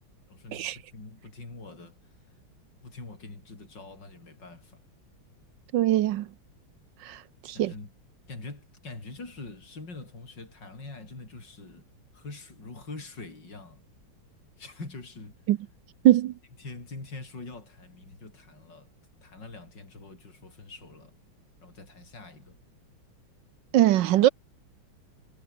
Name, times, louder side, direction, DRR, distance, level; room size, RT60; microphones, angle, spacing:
voice 1, 0.3-2.2 2.8-4.8 7.5-7.9 8.3-11.8 12.1-13.8 14.6-15.4 16.6-18.9 19.2-21.2 21.6-22.6, left 3 dB, 55° left, 6.2 m, -44 dB
voice 2, 5.7-6.3 7.0-7.7 15.5-15.6 16.0-16.3 23.7-24.3, right 13 dB, 70° right, 1.2 m, -22 dB
omnidirectional pair, 2.3 m